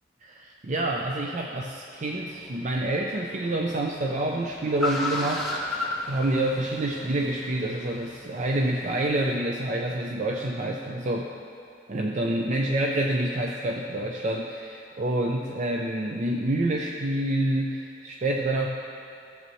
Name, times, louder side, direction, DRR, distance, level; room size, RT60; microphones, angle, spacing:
voice 1, 0.2-11.3 11.9-18.7, right 1 dB, 40° right, 0 dB, 0.5 m, -27 dB
Car, 2.0-9.4, left 2 dB, ahead, 1.1 m, -36 dB
14.0 x 7.4 x 3.1 m, 2.6 s
head